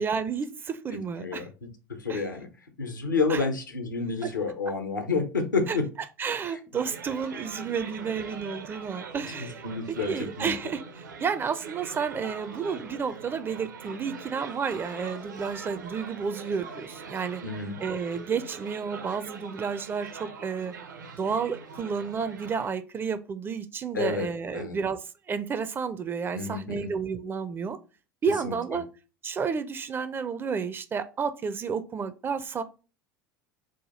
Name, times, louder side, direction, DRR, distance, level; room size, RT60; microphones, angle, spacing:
voice 1, 0.0-1.5 2.1-2.2 3.3-3.4 4.2-4.3 5.7-5.8 6.2-17.4 17.8-20.7 21.2-27.8 28.2-28.9 29.2-32.6, right 6 dB, 20° right, 11 dB, 0.4 m, -31 dB
voice 2, 1.9-2.5 2.8-5.8 9.6-10.1 10.4-10.5 17.4-17.7 23.9-24.8 26.3-26.9 28.4-28.5, left 4 dB, 80° left, 6 dB, 0.7 m, -29 dB
sound 1, 6.7-22.7, right 5 dB, 70° right, 0.6 m, -42 dB
4.8 x 2.2 x 4.1 m, 0.33 s
figure-of-eight pair, 75°, 10 cm